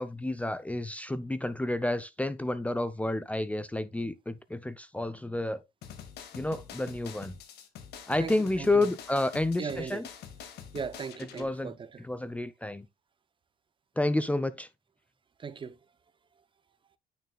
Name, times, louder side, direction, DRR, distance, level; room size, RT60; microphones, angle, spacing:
voice 1, 0.0-5.6 6.3-7.3 8.1-10.1 11.4-11.7 12.0-12.9 14.0-14.7, left 2 dB, 10° left, 0.6 m, -30 dB
sound 1, 5.8-11.5, left 8 dB, 75° left, 1.9 m, -46 dB
voice 2, 8.2-8.9 9.6-10.0 10.7-12.0 15.4-15.8, right 6 dB, 30° right, 0.7 m, -38 dB
9.3 x 6.7 x 2.3 m
cardioid pair, 110°, 17 cm